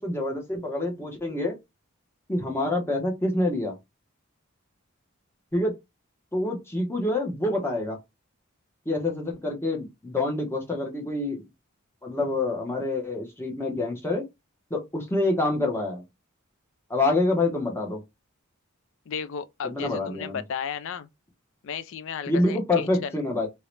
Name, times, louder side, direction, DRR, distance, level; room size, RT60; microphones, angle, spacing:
voice 1, 0.0-1.6 2.3-3.7 5.5-5.7 6.3-8.0 8.9-11.4 12.0-14.2 14.7-16.0 16.9-18.0 19.6-20.4 22.3-23.5, left 2 dB, 10° left, 1.0 m, -26 dB
voice 2, 19.1-21.1 21.6-23.2, left 7 dB, 65° left, 0.4 m, -34 dB
3.0 x 2.8 x 3.1 m
head